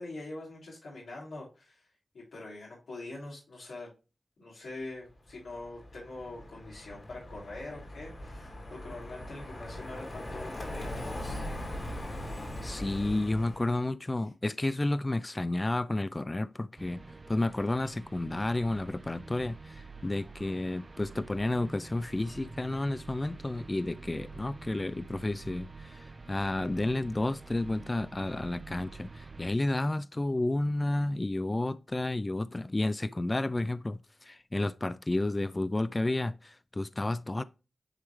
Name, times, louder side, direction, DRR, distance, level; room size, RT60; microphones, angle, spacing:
voice 1, 0.0-1.9 2.1-3.9 4.4-11.4, left 2 dB, 90° left, 3.0 m, -44 dB
Car passing by, 5.3-13.8, left 1 dB, 50° left, 2.5 m, -40 dB
voice 2, 12.6-17.0 17.3-37.4, left 2 dB, 30° left, 0.4 m, -31 dB
sound 1, 16.8-29.5, right 4 dB, 45° right, 0.6 m, -47 dB
10.0 x 3.4 x 3.1 m
cardioid pair, 40°, 0 cm